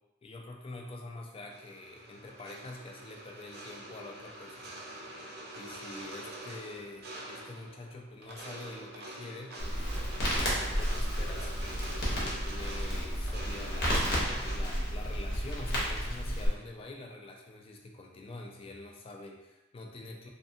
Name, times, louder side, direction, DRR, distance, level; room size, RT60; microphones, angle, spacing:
voice 1, 0.2-4.7 5.6-9.9 10.4-14.1 14.4-20.3, left 2 dB, 30° left, 1 dB, 0.3 m, -46 dB
sound 1, 1.5-14.6, right 1 dB, 50° right, 0.4 m, -45 dB
Crackle, 9.6-16.5, equal, 55° left, 0.7 m, -32 dB
2.5 x 2.4 x 2.5 m, 1.0 s
head